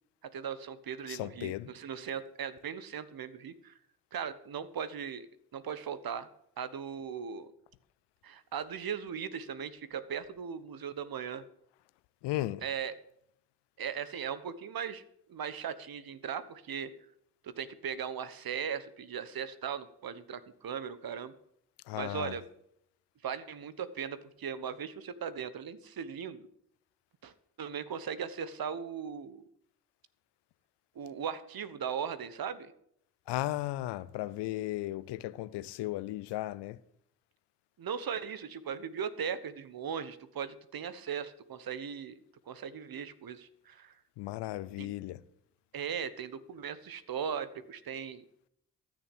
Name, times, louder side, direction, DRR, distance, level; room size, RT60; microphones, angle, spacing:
voice 1, 0.2-3.7 4.1-5.3 5.5-6.3 6.6-7.5 8.2-11.4 12.6-12.9 13.8-15.0 15.3-16.9 17.4-21.3 21.9-22.4 23.2-26.4 27.2-27.3 27.6-29.4 30.9-32.7 37.8-42.2 42.5-43.9 44.8-44.9 45.7-48.2, right 7 dB, 60° right, 1.3 m, -38 dB
voice 2, 1.1-1.7 12.2-12.6 21.9-22.3 33.3-36.8 44.2-45.2, left 16 dB, 80° left, 0.6 m, -35 dB
13.5 x 6.5 x 8.5 m
hypercardioid pair, 40°, 40 cm